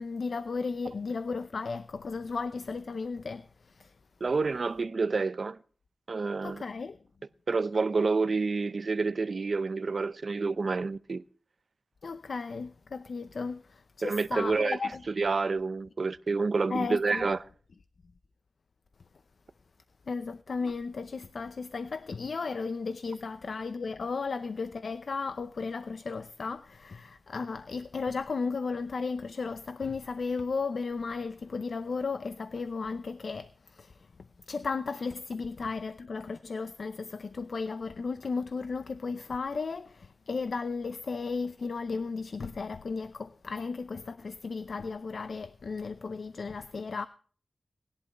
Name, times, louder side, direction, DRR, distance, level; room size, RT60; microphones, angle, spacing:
voice 1, 0.0-3.9 6.4-7.0 12.0-15.0 16.7-17.3 20.1-34.1 34.5-47.1, left 4 dB, 70° left, 0.6 m, -35 dB
voice 2, 4.2-5.6 6.1-6.6 7.5-11.2 14.0-14.8 15.1-17.4, right 4 dB, 60° right, 0.7 m, -28 dB
19.5 x 11.5 x 3.0 m
wide cardioid pair, 100°, 0 cm